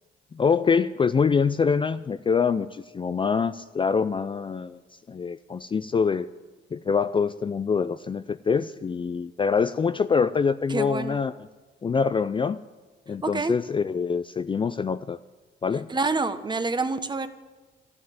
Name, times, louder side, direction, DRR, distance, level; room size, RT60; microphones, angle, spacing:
voice 1, 0.3-4.8 5.1-6.3 6.7-11.3 11.8-12.6 13.1-15.2 15.6-15.9, left 5 dB, 25° left, 12 dB, 0.4 m, -25 dB
voice 2, 10.7-11.2 13.2-13.5 15.9-17.3, right 3 dB, 20° right, 10 dB, 1.1 m, -27 dB
12.5 x 9.6 x 9.4 m, 1.3 s
cardioid pair, 90°, 20 cm